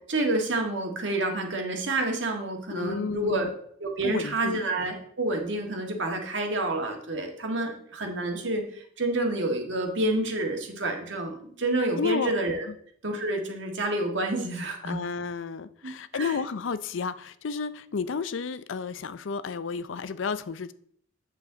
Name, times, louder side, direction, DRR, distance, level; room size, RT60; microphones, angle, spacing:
voice 1, 0.1-3.5 3.8-12.7 13.0-15.0 15.8-16.4, right 2 dB, 70° right, 1.7 m, -29 dB
voice 2, 2.7-3.5 4.0-4.6 12.0-12.3 12.7-12.8 14.8-20.7, left 5 dB, 80° left, 0.5 m, -32 dB
8.2 x 7.0 x 3.9 m
head